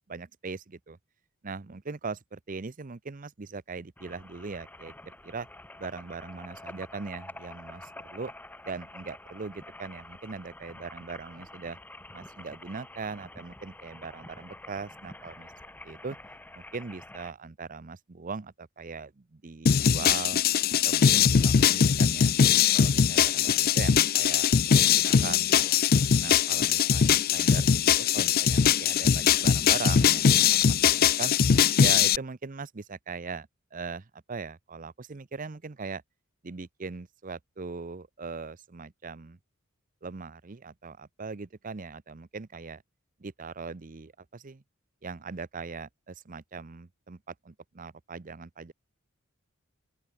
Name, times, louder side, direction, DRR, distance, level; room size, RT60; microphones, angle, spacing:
voice 1, 0.1-1.0 1.4-5.5 5.8-8.3 8.6-11.8 12.1-15.5 15.8-16.2 16.5-20.4 20.8-22.3 22.7-25.8 26.2-31.4 31.8-36.0 36.4-39.4 40.0-42.8 43.2-44.6 45.0-48.7, right 4 dB, 40° right, 0.7 m, -40 dB
sound 1, 4.0-17.3, left 1 dB, 10° left, 1.4 m, -48 dB
sound 2, 19.7-32.2, left 7 dB, 45° left, 0.4 m, -21 dB
open air
head